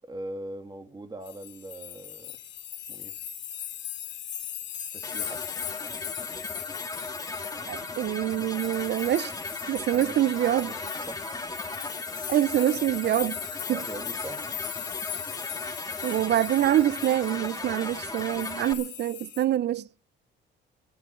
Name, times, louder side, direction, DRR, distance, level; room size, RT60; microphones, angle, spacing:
voice 1, 0.0-2.4 2.9-3.1 4.9-5.4 9.9-10.2 10.6-11.2 13.7-14.4, right 1 dB, 20° right, 2.8 m, -41 dB
sound 1, 1.3-19.4, left 10 dB, 65° left, 2.8 m, -39 dB
sound 2, 5.0-18.7, left 2 dB, 20° left, 2.2 m, -37 dB
voice 2, 7.7-9.3 9.7-10.7 12.3-13.4 13.7-13.8 16.0-19.8, right 12 dB, 60° right, 0.6 m, -25 dB
22.5 x 7.9 x 5.5 m
cardioid pair, 90°, 20 cm